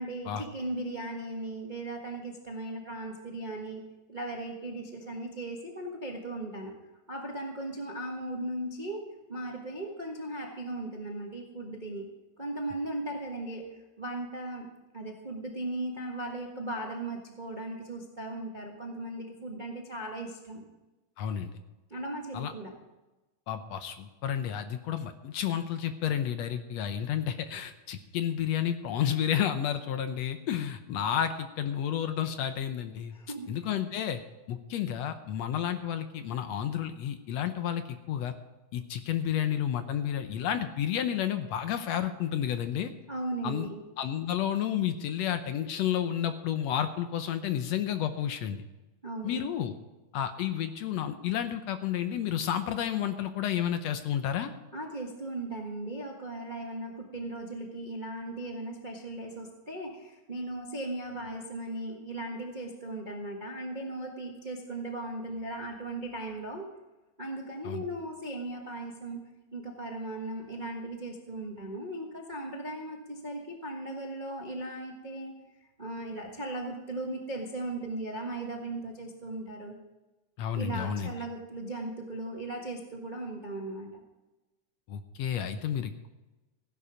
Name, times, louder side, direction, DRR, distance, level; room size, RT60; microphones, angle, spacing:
voice 1, 0.0-3.8 4.1-6.7 7.1-9.0 9.3-12.1 12.4-14.7 14.9-20.7 21.9-22.7 33.1-33.6 43.1-43.8 49.0-49.5 54.7-66.6 67.2-69.2 69.5-75.3 75.8-79.8 80.5-84.0, right 2 dB, 30° right, 0 dB, 0.8 m, -37 dB
voice 2, 21.2-21.5 22.3-22.5 23.5-33.1 33.5-34.2 34.5-38.3 38.7-42.9 43.4-43.7 44.0-48.6 49.2-49.8 50.1-54.5 67.7-67.8 80.4-81.1 84.9-86.1, left 9 dB, 70° left, 9 dB, 1.8 m, -31 dB
16.0 x 11.0 x 5.0 m, 1.1 s
omnidirectional pair, 3.4 m